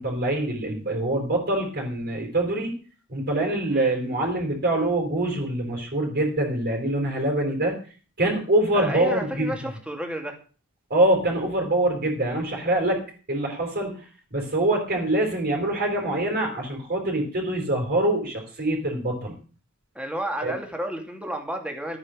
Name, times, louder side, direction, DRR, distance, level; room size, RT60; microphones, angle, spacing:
voice 1, 0.0-2.7 3.1-7.8 8.2-9.5 10.9-13.0 13.3-19.3 20.4-20.5, right 1 dB, 45° right, 0 dB, 4.3 m, -24 dB
voice 2, 8.7-10.4 13.5-13.6 19.9-22.0, right 1 dB, 5° right, 3 dB, 2.6 m, -31 dB
13.5 x 9.2 x 6.5 m, 0.38 s
head